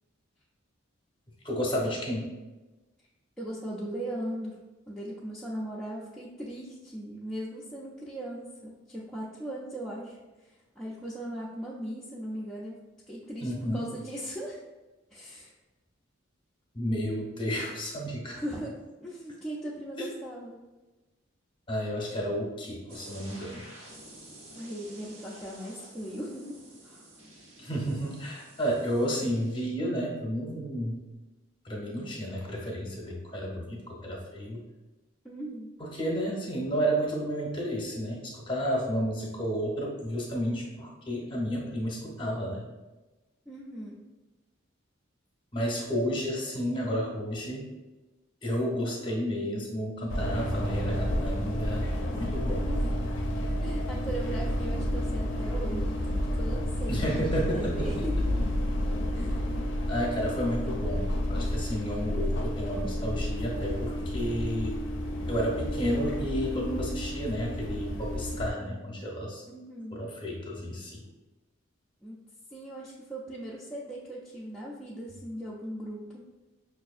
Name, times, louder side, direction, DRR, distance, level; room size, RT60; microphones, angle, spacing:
voice 1, 1.4-2.3 13.4-13.8 16.7-18.4 21.7-23.6 27.6-31.0 31.6-34.6 35.8-42.6 45.5-47.7 48.4-52.7 56.9-57.9 59.9-64.9 65.3-69.4 69.9-71.0, equal, 25° left, -2 dB, 0.7 m, -31 dB
voice 2, 3.4-4.6 4.9-12.8 13.1-14.6 15.1-15.5 18.3-20.6 24.5-27.1 35.2-35.7 43.5-44.0 52.4-52.9 53.6-58.3 59.1-59.5 69.5-70.0 72.0-72.2 72.5-76.2, right 1 dB, 5° left, -7 dB, 0.4 m, -39 dB
sound 1, 22.9-29.7, right 1 dB, 85° right, 1.2 m, -50 dB
sound 2, 50.1-68.5, equal, 65° left, 0.4 m, -30 dB
5.6 x 2.4 x 2.4 m, 1.1 s
head